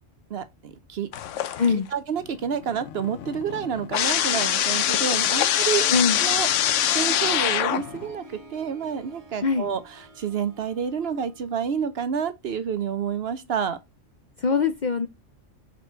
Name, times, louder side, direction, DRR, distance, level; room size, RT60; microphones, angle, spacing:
voice 1, 0.3-1.1 1.9-5.9 6.2-6.5 6.9-13.8, right 7 dB, 60° right, 0.9 m, -29 dB
sound 1, 1.1-1.9 2.3-8.1, left 11 dB, 80° left, 0.9 m, -24 dB
Harp, 4.0-11.7, right 2 dB, 30° right, 1.1 m, -45 dB
voice 2, 14.4-15.1, left 5 dB, 50° left, 0.6 m, -22 dB
5.2 x 4.3 x 4.5 m
omnidirectional pair, 1.3 m